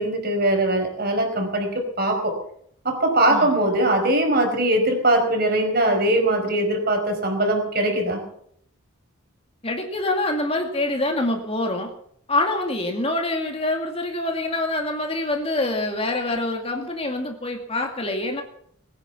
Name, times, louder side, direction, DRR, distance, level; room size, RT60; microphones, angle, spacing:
voice 1, 0.0-2.4 2.8-8.2, right 1 dB, 45° right, 4 dB, 4.9 m, -21 dB
voice 2, 9.6-11.9 12.3-18.4, left 2 dB, 30° left, 3 dB, 2.3 m, -25 dB
21.5 x 9.5 x 7.2 m, 0.66 s
head